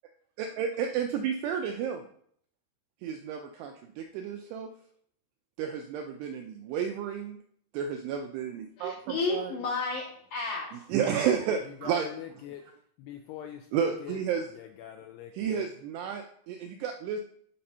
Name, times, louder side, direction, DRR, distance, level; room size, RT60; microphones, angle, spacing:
voice 1, 0.4-2.1 3.0-4.7 5.6-7.4 7.7-9.5 10.9-12.1 13.7-14.4 15.4-17.2, right 8 dB, 85° right, 4 dB, 2.4 m, -31 dB
voice 2, 8.8-10.9, left 4 dB, 70° left, -4 dB, 2.0 m, -32 dB
voice 3, 11.6-12.7 13.0-14.2 14.5-15.7, left 10 dB, 85° left, 5 dB, 2.3 m, -43 dB
8.5 x 4.2 x 5.4 m, 0.63 s
omnidirectional pair, 5.3 m